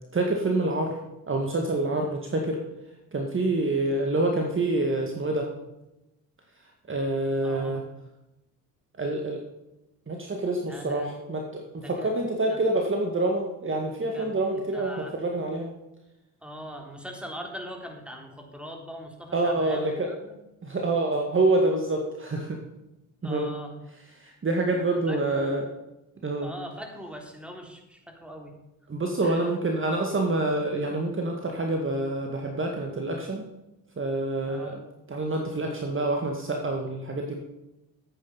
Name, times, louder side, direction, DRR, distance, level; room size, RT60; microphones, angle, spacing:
voice 1, 0.1-0.9 1.3-2.6 3.1-5.5 6.9-7.9 9.0-9.4 10.1-15.7 19.3-20.1 20.6-22.6 23.2-23.5 24.2-25.7 26.2-26.5 28.9-33.4 34.0-34.8 35.1-37.4, right 2 dB, 25° right, 2 dB, 1.9 m, -27 dB
voice 2, 7.4-7.8 10.6-11.1 11.8-12.1 12.5-12.6 14.1-15.1 16.4-20.3 23.2-23.7 25.1-25.6 26.4-28.5 29.2-29.4 34.4-34.9, equal, ahead, 2 dB, 3.5 m, -41 dB
13.5 x 8.8 x 5.7 m, 0.95 s
hypercardioid pair, 60°, 46 cm